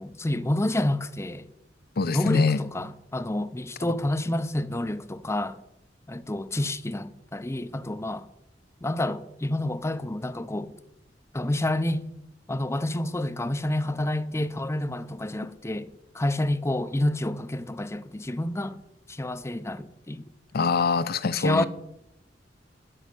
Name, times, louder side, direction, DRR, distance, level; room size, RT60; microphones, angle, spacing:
voice 1, 0.0-1.5 2.1-5.6 6.1-8.3 8.8-10.7 11.3-12.1 12.5-18.8 19.1-20.3 21.3-21.7, left 1 dB, 15° left, 0.6 m, -28 dB
voice 2, 2.0-2.6 20.5-21.7, left 4 dB, 55° left, 0.6 m, -24 dB
12.5 x 5.6 x 7.8 m
head